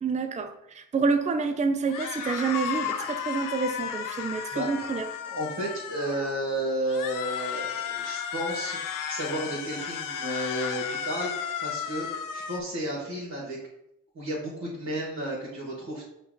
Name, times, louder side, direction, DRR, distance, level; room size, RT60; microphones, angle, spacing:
voice 1, 0.0-5.0, right 4 dB, 15° right, 8 dB, 0.5 m, -28 dB
sound 1, 1.9-6.4 6.9-12.6, left 8 dB, 50° left, 0.6 m, -34 dB
voice 2, 4.5-13.6 14.1-16.0, right 1 dB, 40° right, -6 dB, 1.7 m, -33 dB
5.6 x 2.6 x 3.7 m, 0.80 s
hypercardioid pair, 45°, 44 cm